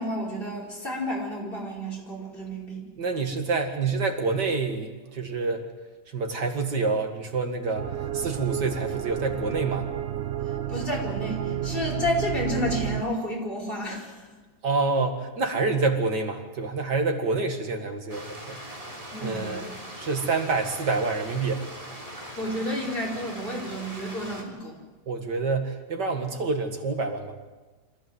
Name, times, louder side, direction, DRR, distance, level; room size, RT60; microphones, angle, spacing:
voice 1, 0.0-2.8 10.7-14.3 19.1-19.6 22.4-24.8, left 1 dB, 30° left, -1 dB, 5.4 m, -31 dB
voice 2, 3.0-5.6 6.1-9.9 14.6-18.6 19.2-19.7 20.0-21.6 25.1-27.4, right 4 dB, 85° right, 4 dB, 2.7 m, -27 dB
sound 1, 7.8-13.0, right 10 dB, 50° right, 0.9 m, -31 dB
Stream, 18.1-24.4, right 1 dB, 20° right, 3.7 m, -41 dB
26.0 x 15.0 x 7.9 m, 1.3 s
omnidirectional pair, 1.8 m